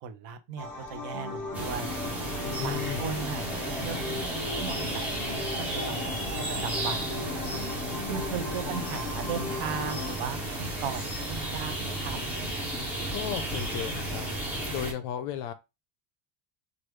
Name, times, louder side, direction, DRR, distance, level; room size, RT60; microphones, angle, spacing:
voice 1, 0.0-2.0 2.6-4.0 4.3-5.4 5.7-7.4 8.1-12.2, right 7 dB, 55° right, 0.6 m, -37 dB
sound 1, 0.6-10.2, left 2 dB, 40° left, 1.2 m, -37 dB
sound 2, 1.5-14.9, right 1 dB, 5° right, 0.5 m, -33 dB
voice 2, 2.4-3.2 13.1-14.3 14.7-15.5, left 10 dB, 55° left, 0.5 m, -34 dB
3.3 x 2.4 x 3.1 m
cardioid pair, 175°, 48 cm